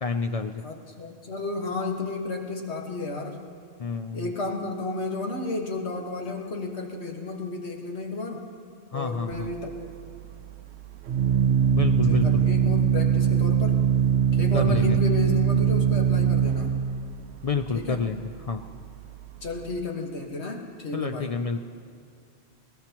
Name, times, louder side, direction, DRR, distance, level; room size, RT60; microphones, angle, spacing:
voice 1, 0.0-0.7 3.8-4.3 8.9-9.5 11.7-12.4 14.5-15.0 17.4-18.6 20.9-21.6, left 5 dB, 55° left, 6 dB, 0.4 m, -29 dB
voice 2, 0.6-3.4 4.1-8.4 8.9-9.8 12.0-13.8 14.3-16.8 17.7-18.0 19.4-21.4, left 3 dB, 80° left, 1 dB, 1.8 m, -32 dB
Organ, 9.3-19.8, right 8 dB, 85° right, 0.9 m, -23 dB
20.0 x 19.5 x 2.9 m, 2.4 s
omnidirectional pair, 1.1 m